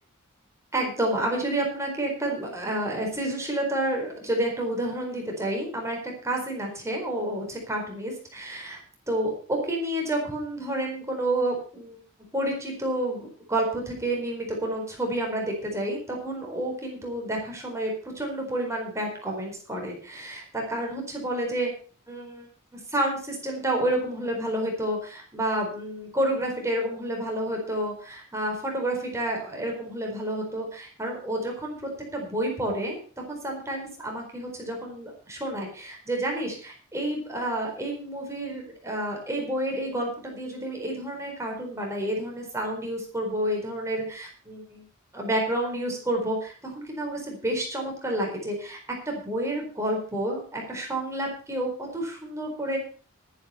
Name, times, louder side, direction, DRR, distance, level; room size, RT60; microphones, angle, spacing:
voice 1, 0.7-8.8 9.1-12.0 12.3-21.7 22.1-33.0 33.3-44.8 45.1-48.8 49.1-52.8, right 1 dB, 15° right, 0 dB, 4.3 m, -30 dB
12.0 x 10.5 x 5.7 m, 0.40 s
head